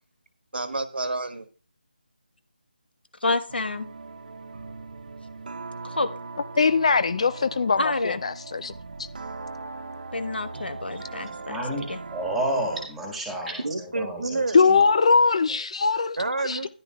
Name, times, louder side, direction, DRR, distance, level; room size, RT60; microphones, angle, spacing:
voice 1, 0.5-1.5 13.6-15.0 16.2-16.7, right 2 dB, 80° right, 1.4 m, -29 dB
voice 2, 3.2-3.9 5.8-6.1 7.8-8.2 10.1-11.6 11.9-12.0, left 2 dB, 80° left, 1.3 m, -28 dB
sound 1, 3.5-13.0, right 3 dB, 55° right, 0.7 m, -39 dB
voice 3, 6.6-8.7 9.0-9.1 14.5-16.2 16.4-16.7, left 4 dB, 35° left, 0.3 m, -21 dB
voice 4, 10.9-13.6 13.9-14.9, right 1 dB, 5° right, 1.6 m, -31 dB
13.5 x 10.5 x 2.3 m
figure-of-eight pair, 165°, 5 cm